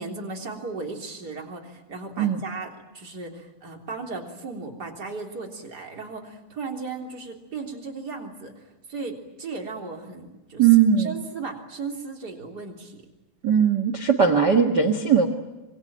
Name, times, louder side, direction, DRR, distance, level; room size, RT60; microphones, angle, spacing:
voice 1, 0.0-8.6 8.9-10.7 11.0-13.1, right 4 dB, 25° right, 1 dB, 3.6 m, -36 dB
voice 2, 10.6-11.1 13.4-15.3, right 7 dB, 55° right, 8 dB, 1.1 m, -19 dB
26.0 x 24.0 x 9.1 m, 1.1 s
omnidirectional pair, 4.7 m